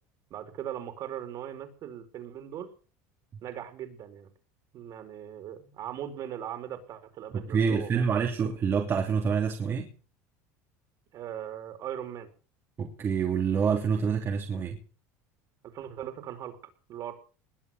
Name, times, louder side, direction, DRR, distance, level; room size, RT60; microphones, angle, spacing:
voice 1, 0.3-2.7 3.4-4.3 4.7-8.2 11.1-12.3 15.6-16.5 16.9-17.1, right 10 dB, 50° right, 4.8 m, -39 dB
voice 2, 7.3-9.9 12.8-14.8, right 6 dB, 35° right, 3.0 m, -27 dB
21.0 x 8.4 x 7.8 m
supercardioid pair, 115°, 8 cm